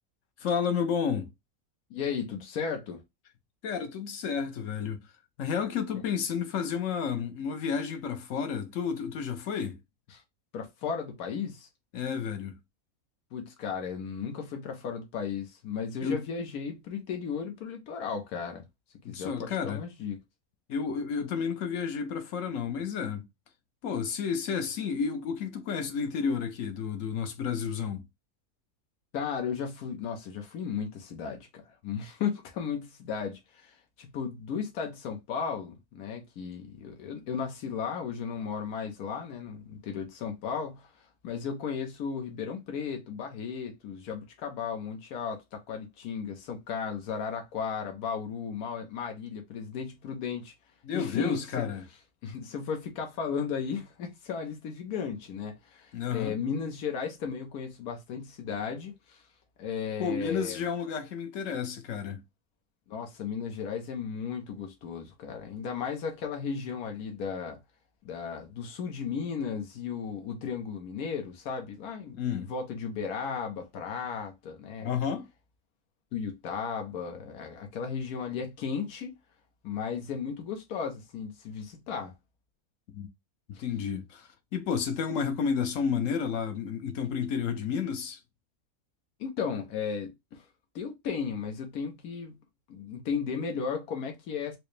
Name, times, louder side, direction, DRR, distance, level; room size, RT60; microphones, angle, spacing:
voice 1, 0.4-1.3 3.6-5.0 5.4-9.8 11.9-12.6 16.0-16.2 19.0-19.8 20.7-23.3 23.8-28.0 50.8-51.9 55.9-56.4 60.0-62.2 72.1-72.5 74.8-75.3 82.9-83.1 83.5-88.2, left 6 dB, 65° left, 1.0 m, -31 dB
voice 2, 1.9-3.0 10.1-10.2 10.5-11.7 13.3-18.6 19.1-20.2 29.1-50.5 50.9-51.6 52.2-59.2 59.6-60.6 62.9-67.6 68.0-74.9 76.1-79.1 79.6-82.1 83.5-83.6 89.2-90.5 90.7-92.3 92.7-94.6, left 6 dB, 85° left, 1.3 m, -35 dB
4.7 x 2.1 x 3.2 m
omnidirectional pair, 1.5 m